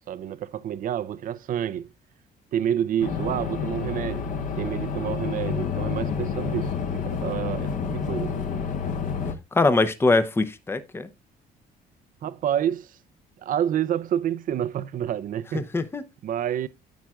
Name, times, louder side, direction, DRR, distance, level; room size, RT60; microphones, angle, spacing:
voice 1, 0.1-1.9 2.5-4.3 4.6-8.3 12.2-13.0 13.4-15.7 16.2-16.7, right 10 dB, 55° right, 0.6 m, -28 dB
sound 1, 3.0-9.3, left 6 dB, 50° left, 1.4 m, -29 dB
voice 2, 9.5-11.1 15.5-16.0, left 3 dB, 15° left, 0.7 m, -22 dB
10.5 x 8.6 x 2.4 m
cardioid pair, 110°, 17 cm